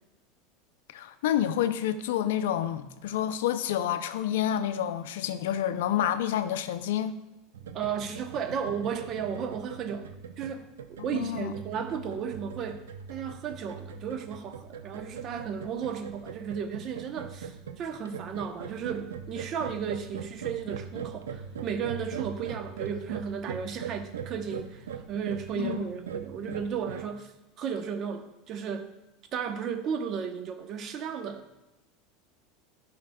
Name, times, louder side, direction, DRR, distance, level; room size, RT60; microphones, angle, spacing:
voice 1, 0.9-7.2 11.1-11.5 25.6-25.8, left 10 dB, 75° left, 11 dB, 0.4 m, -28 dB
sound 1, 7.5-27.0, right 7 dB, 85° right, 0.5 m, -41 dB
voice 2, 7.7-10.6 10.9-27.3 27.6-28.9 29.3-31.5, right 7 dB, 45° right, 7 dB, 0.8 m, -34 dB
11.0 x 5.6 x 2.3 m, 1.0 s
hypercardioid pair, 95°, 0 cm